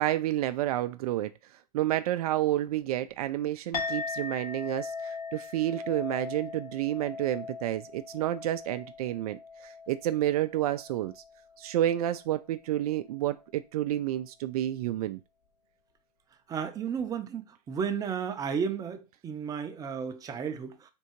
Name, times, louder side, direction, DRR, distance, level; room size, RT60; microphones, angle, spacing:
voice 1, 0.0-1.3 1.7-11.1 11.6-15.2, right 13 dB, 65° right, 0.4 m, -30 dB
Chink clink, 3.7-12.4, left 4 dB, 70° left, 1.7 m, -40 dB
voice 2, 16.5-20.9, right 7 dB, 15° right, 0.6 m, -33 dB
3.7 x 2.7 x 4.4 m
hypercardioid pair, 120°, 21 cm